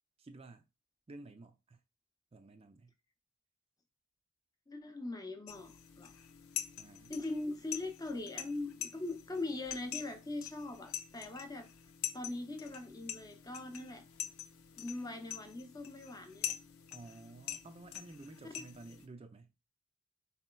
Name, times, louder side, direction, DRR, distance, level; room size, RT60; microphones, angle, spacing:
voice 1, 0.2-0.6 1.1-1.8 2.3-2.9 6.8-7.1 16.9-19.5, right 2 dB, 25° right, 0.4 m, -52 dB
voice 2, 4.7-6.1 7.1-11.7 12.1-14.0 14.8-16.5 18.6-18.7, left 2 dB, 15° left, 0.6 m, -41 dB
sound 1, 5.5-19.1, left 11 dB, 70° left, 0.5 m, -45 dB
4.1 x 4.1 x 2.2 m
head